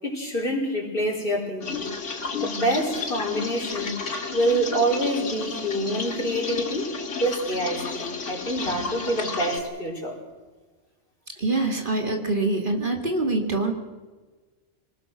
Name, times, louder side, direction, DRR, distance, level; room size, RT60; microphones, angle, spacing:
voice 1, 0.0-1.9 2.3-4.0 4.3-6.9 7.2-10.2, right 1 dB, 50° left, -1 dB, 5.2 m, -26 dB
sound 1, 1.6-9.6, left 4 dB, 85° left, 2.2 m, -32 dB
voice 2, 11.4-13.7, right 2 dB, 45° right, 2 dB, 2.6 m, -25 dB
26.5 x 19.5 x 6.4 m, 1.3 s
omnidirectional pair, 1.2 m